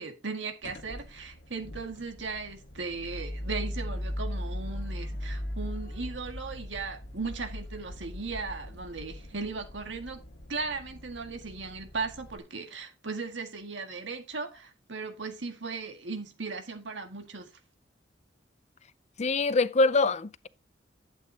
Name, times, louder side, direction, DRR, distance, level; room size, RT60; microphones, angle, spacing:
voice 1, 0.0-10.2 10.5-17.5, right 4 dB, 85° right, 1.9 m, -37 dB
sound 1, 0.6-12.4, left 1 dB, 65° left, 1.6 m, -39 dB
voice 2, 19.2-20.5, left 3 dB, 40° left, 0.5 m, -24 dB
11.5 x 8.4 x 2.9 m
head